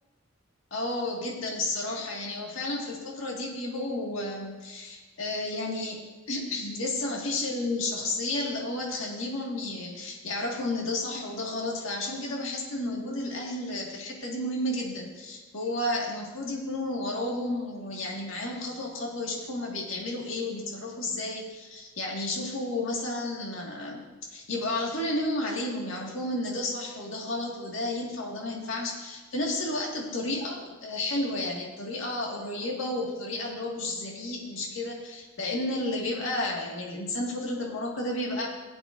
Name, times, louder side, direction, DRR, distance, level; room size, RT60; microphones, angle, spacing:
voice 1, 0.7-24.0 24.3-38.5, left 2 dB, 75° left, -1 dB, 2.0 m, -32 dB
16.5 x 8.5 x 2.6 m, 1.2 s
head